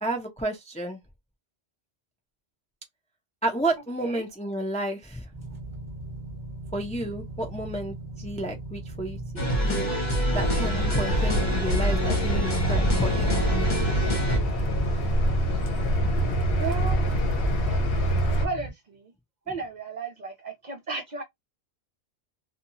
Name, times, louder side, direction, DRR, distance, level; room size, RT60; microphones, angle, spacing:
voice 1, 0.0-1.0 3.4-5.3 6.7-9.2 9.6-9.9 10.3-13.4, right 1 dB, 10° left, 0.4 m, -31 dB
sound 1, 5.3-18.7, right 2 dB, 15° right, 0.9 m, -38 dB
sound 2, 9.4-14.4, right 1 dB, 45° left, 1.2 m, -26 dB
sound 3, 10.3-18.5, equal, 65° left, 0.9 m, -26 dB
voice 2, 16.5-17.2 17.7-17.8 18.3-19.1 19.5-21.2, right 4 dB, 50° right, 0.6 m, -35 dB
2.8 x 2.3 x 2.6 m
omnidirectional pair, 1.1 m